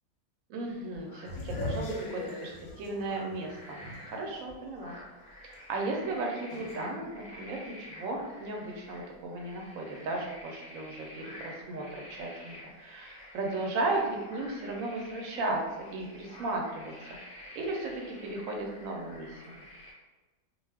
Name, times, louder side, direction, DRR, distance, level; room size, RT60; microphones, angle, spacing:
voice 1, 0.5-5.0 5.7-15.6 15.9-16.9 17.6-19.6, right 2 dB, 70° right, 1 dB, 0.9 m, -35 dB
sound 1, 0.7-19.9, left 1 dB, 35° left, 0.7 m, -49 dB
sound 2, 1.3-4.4 4.8-4.9 6.5-6.8, left 2 dB, 90° left, 1.1 m, -38 dB
2.4 x 2.2 x 3.3 m, 1.2 s
omnidirectional pair, 1.6 m